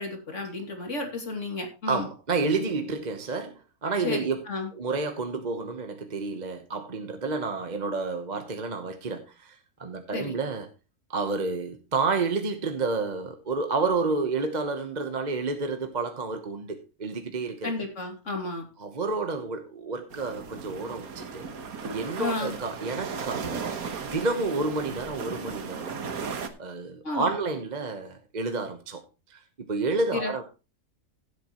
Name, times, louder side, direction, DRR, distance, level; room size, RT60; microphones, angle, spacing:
voice 1, 0.0-2.1 4.0-4.7 10.1-10.3 17.6-18.6 22.2-22.5 27.0-27.4 30.1-30.4, left 3 dB, 55° left, 3.0 m, -32 dB
voice 2, 1.9-4.4 4.7-10.7 11.1-17.7 18.8-21.5 21.9-23.7 24.0-26.1 26.6-29.0 29.3-30.4, right 3 dB, 30° right, 1.1 m, -30 dB
sound 1, 20.1-26.5, right 5 dB, 75° right, 1.7 m, -36 dB
16.0 x 8.1 x 3.0 m
omnidirectional pair, 1.6 m